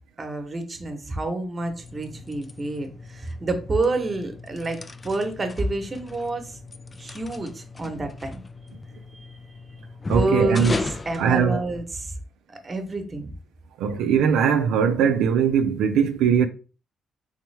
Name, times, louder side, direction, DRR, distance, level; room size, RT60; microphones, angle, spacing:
voice 1, 0.2-6.6 7.0-8.4 10.1-12.1 12.6-13.3, right 2 dB, 30° right, 0.9 m, -28 dB
sound 1, 1.6-12.1, left 3 dB, 25° left, 0.3 m, -37 dB
voice 2, 10.1-10.7 11.2-11.6 13.8-16.5, right 7 dB, 90° right, 0.4 m, -20 dB
3.5 x 3.1 x 3.2 m
cardioid pair, 90°, 0 cm